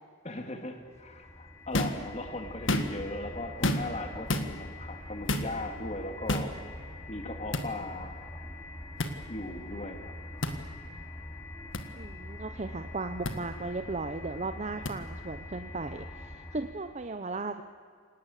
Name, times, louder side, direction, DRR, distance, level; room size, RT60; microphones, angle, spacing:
voice 1, 0.2-6.5 7.1-8.2 9.3-10.1, left 2 dB, 35° left, 5 dB, 2.2 m, -38 dB
sound 1, 0.8-17.0, left 1 dB, 20° left, 2.9 m, -44 dB
sound 2, 1.7-2.0 2.5-3.1 3.6-4.0 4.3-4.5 5.3-5.5 6.3-6.5 7.5-7.7 9.0-9.1 10.4-10.6 11.7-11.8 13.2-13.4 14.9-15.0, left 1 dB, 75° left, 1.8 m, -29 dB
voice 2, 11.9-17.6, right 3 dB, 35° right, 8 dB, 0.8 m, -36 dB
28.5 x 18.5 x 8.3 m, 2.2 s
head